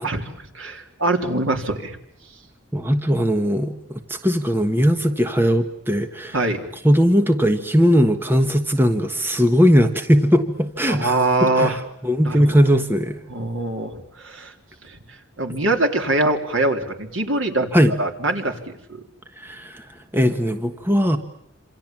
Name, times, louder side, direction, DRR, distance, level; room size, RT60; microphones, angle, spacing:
voice 1, 0.0-2.0 6.3-6.6 10.9-11.8 12.2-12.4 13.3-14.5 14.8-15.0 15.4-19.0, right 2 dB, 70° right, 4 dB, 3.8 m, -23 dB
voice 2, 2.7-6.4 6.8-13.2 17.7-17.9 19.4-19.8 20.1-21.2, equal, 10° right, 7 dB, 1.4 m, -19 dB
27.5 x 26.5 x 7.4 m, 0.74 s
head